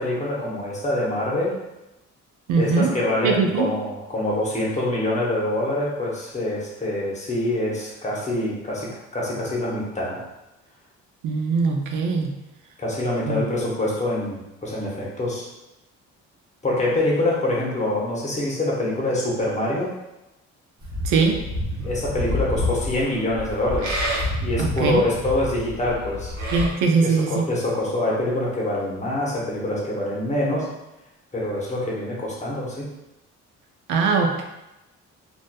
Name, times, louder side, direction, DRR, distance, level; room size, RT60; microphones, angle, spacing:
voice 1, 0.0-1.6 2.6-10.2 12.8-15.5 16.6-19.9 21.8-24.0 24.4-26.3 27.0-30.7 31.3-32.9, left 1 dB, 25° left, -5 dB, 0.8 m, -25 dB
voice 2, 2.5-2.9 3.2-3.7 11.2-12.4 13.3-13.4 21.0-21.4 24.6-25.0 26.5-27.5 33.9-34.4, right 4 dB, 85° right, 3 dB, 0.4 m, -21 dB
Livestock farm animals working animals, 20.8-26.7, left 1 dB, 70° right, 0.9 m, -28 dB
2.5 x 2.4 x 2.2 m, 0.95 s
cardioid pair, 90°, 30 cm